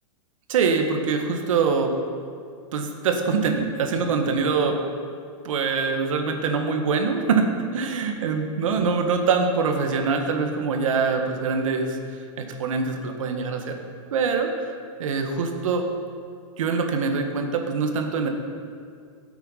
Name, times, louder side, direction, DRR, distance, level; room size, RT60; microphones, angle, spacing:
voice 1, 0.5-1.9 2.7-4.8 5.4-12.0 12.4-13.8 14.1-14.5 15.0-15.8 16.6-18.3, right 5 dB, 70° right, 4 dB, 1.7 m, -24 dB
16.0 x 8.2 x 5.7 m, 2.3 s
supercardioid pair, 170°, 17 cm